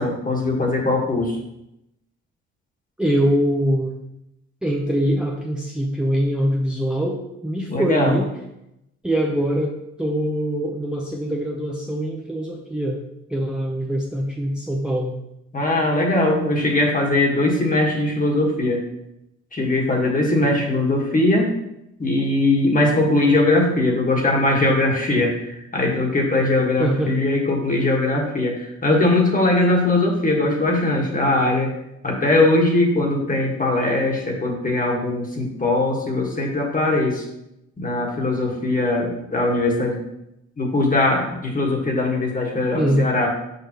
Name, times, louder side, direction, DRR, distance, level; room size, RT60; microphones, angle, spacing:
voice 1, 0.0-1.4 7.7-8.2 15.5-18.8 19.5-21.5 22.0-31.7 32.0-37.3 37.8-40.0 40.6-43.3, left 2 dB, 25° left, 0 dB, 1.6 m, -20 dB
voice 2, 3.0-4.0 4.6-8.3 9.0-9.7 10.0-13.0 13.3-15.2 26.8-27.1 42.7-43.1, equal, 5° right, -1 dB, 0.7 m, -23 dB
6.8 x 4.9 x 3.0 m, 0.84 s
cardioid pair, 90°, 30 cm